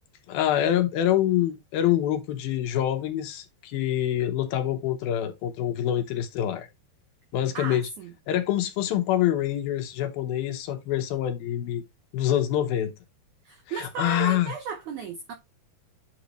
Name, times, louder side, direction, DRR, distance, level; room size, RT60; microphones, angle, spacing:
voice 1, 0.3-6.7 7.3-7.9 8.3-11.8 12.1-12.9 13.7-14.5, left 11 dB, 70° left, 2.7 m, -26 dB
voice 2, 7.5-8.1 13.4-15.3, right 6 dB, 75° right, 1.8 m, -35 dB
9.1 x 6.6 x 3.1 m
omnidirectional pair, 4.7 m